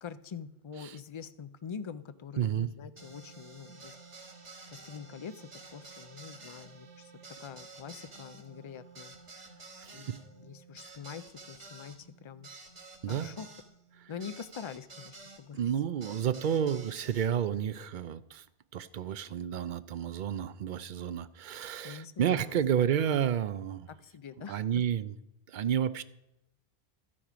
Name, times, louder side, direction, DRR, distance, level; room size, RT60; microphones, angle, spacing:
voice 1, 0.0-4.0 4.7-7.1 7.4-9.1 9.9-12.5 13.1-13.5 14.1-15.6 21.8-22.5 23.9-24.8, left 7 dB, 55° left, 13 dB, 0.3 m, -45 dB
voice 2, 2.4-2.7 9.8-10.2 13.0-13.3 15.5-18.4 18.7-23.9 24.5-25.2 25.5-26.0, right 9 dB, 60° right, 14 dB, 0.6 m, -31 dB
sound 1, 3.0-15.4 16.0-17.3, right 3 dB, 40° right, 1.4 m, -51 dB
12.5 x 8.6 x 5.0 m, 0.86 s
omnidirectional pair, 1.1 m